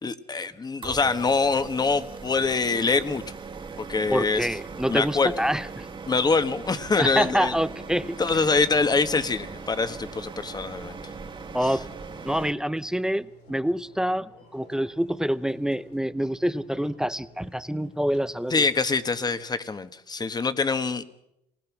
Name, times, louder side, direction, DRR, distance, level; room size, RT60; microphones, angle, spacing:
voice 1, 0.0-3.2 3.8-4.5 4.9-5.3 6.1-7.5 8.2-11.0 11.6-11.7 18.5-21.0, left 4 dB, 25° left, 11 dB, 1.4 m, -24 dB
sound 1, 0.8-12.5, right 4 dB, 30° right, 2.0 m, -39 dB
voice 2, 4.1-5.8 7.0-8.2 11.5-11.8 12.2-18.5, equal, 5° right, 14 dB, 0.7 m, -26 dB
sound 2, 11.0-19.6, left 2 dB, 90° left, 6.1 m, -54 dB
26.5 x 20.0 x 6.1 m, 0.83 s
cardioid pair, 110°, 17 cm